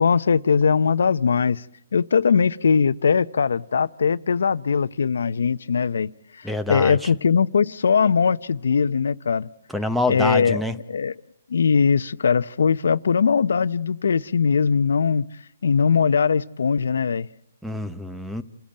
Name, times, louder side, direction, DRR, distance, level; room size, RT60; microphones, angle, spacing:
voice 1, 0.0-1.6 1.9-9.5 10.1-10.6 10.9-11.1 11.5-15.3 15.6-17.3, left 6 dB, 80° left, 0.8 m, -20 dB
voice 2, 6.4-7.1 9.7-10.7 17.6-18.4, left 2 dB, ahead, 0.9 m, -26 dB
28.5 x 16.0 x 8.8 m
hypercardioid pair, 160°, 0 cm